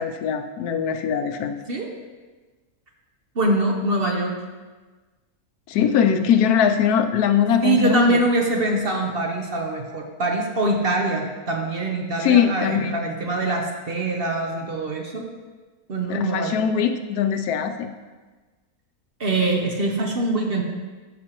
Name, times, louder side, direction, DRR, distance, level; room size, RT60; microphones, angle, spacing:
voice 1, 0.0-1.5 5.7-8.2 12.2-13.0 16.1-17.9, left 8 dB, 80° left, 8 dB, 1.1 m, -21 dB
voice 2, 3.4-4.4 7.6-15.2 15.9-16.7 19.2-20.6, right 2 dB, 45° right, 1 dB, 0.9 m, -23 dB
12.5 x 6.0 x 3.0 m, 1.3 s
omnidirectional pair, 1.6 m